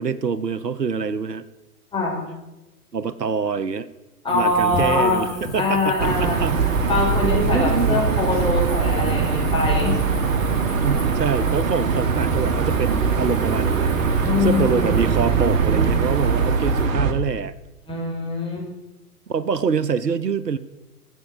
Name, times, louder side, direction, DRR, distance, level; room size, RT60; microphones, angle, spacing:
voice 1, 0.0-1.4 2.9-3.9 4.3-6.9 7.2-8.0 10.8-17.5 19.3-20.6, right 6 dB, 85° right, 16 dB, 0.7 m, -25 dB
voice 2, 4.2-5.3 5.6-6.4 6.9-10.0 14.2-15.0 17.9-18.7, left 2 dB, 10° left, -3 dB, 5.5 m, -23 dB
sound 1, 4.3-16.9, left 4 dB, 55° left, 3.4 m, -39 dB
sound 2, 6.0-17.1, right 5 dB, 55° right, 1.8 m, -21 dB
14.0 x 8.2 x 7.7 m, 1.0 s
figure-of-eight pair, 105°, 47 cm